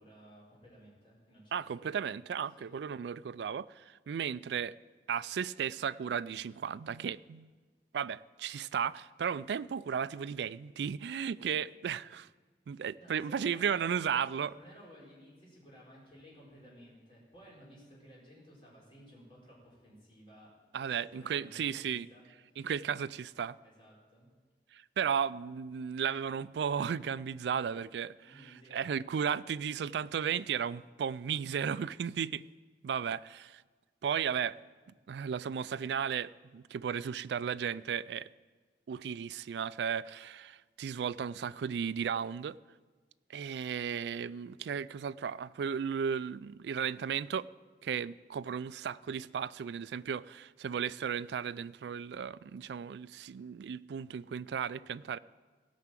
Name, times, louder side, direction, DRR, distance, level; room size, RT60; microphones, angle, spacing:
voice 1, 0.0-1.9 2.6-2.7 13.0-13.9 14.5-20.5 20.8-22.6 23.6-24.3 28.2-28.8, equal, 30° left, 4.4 m, -56 dB
voice 2, 1.5-4.8 5.1-7.5 7.9-12.3 12.7-14.5 20.7-22.1 22.6-23.6 24.7-32.4 32.8-33.6 34.0-34.6 35.1-38.3 38.9-42.6 43.3-47.5 47.8-55.2, right 7 dB, 75° right, 0.3 m, -35 dB
17.0 x 5.9 x 7.4 m
head